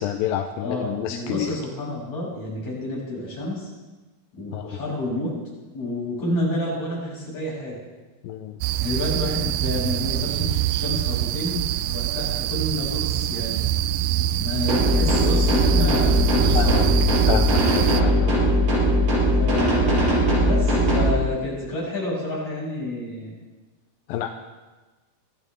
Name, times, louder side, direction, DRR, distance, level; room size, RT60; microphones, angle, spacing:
voice 1, 0.0-1.6 4.5-4.7 8.2-8.6 16.6-16.9 17.3-18.5 24.1-24.3, left 11 dB, 80° left, 5 dB, 2.3 m, -28 dB
voice 2, 0.6-3.7 4.4-5.3 5.7-7.8 8.8-13.6 14.3-17.2 19.4-23.4, left 1 dB, 50° left, -6 dB, 7.6 m, -29 dB
sound 1, 8.6-18.0, right 13 dB, 85° right, 2.5 m, -25 dB
sound 2, 14.7-21.1, equal, 70° right, 7.1 m, -20 dB
25.0 x 14.0 x 3.5 m, 1.2 s
omnidirectional pair, 4.3 m